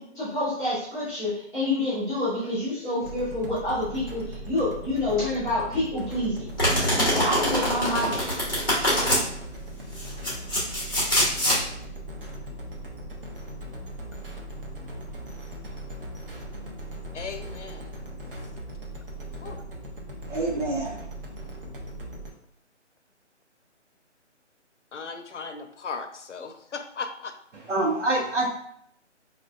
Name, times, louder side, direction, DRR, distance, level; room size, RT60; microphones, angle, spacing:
voice 1, 0.0-6.5 6.9-8.1, left 1 dB, ahead, -12 dB, 1.1 m, -27 dB
sound 1, 3.0-22.3, right 1 dB, 50° right, 0.8 m, -39 dB
Domestic sounds home sounds, 6.6-9.2 10.0-11.6, equal, 20° left, 0.8 m, -24 dB
voice 2, 17.1-17.9 19.4-19.6 24.9-27.3, left 5 dB, 75° left, 6 dB, 0.6 m, -37 dB
voice 3, 20.3-20.9 27.7-28.5, right 2 dB, 75° right, -3 dB, 0.9 m, -25 dB
5.0 x 2.4 x 2.2 m, 0.70 s
hypercardioid pair, 175°, 36 cm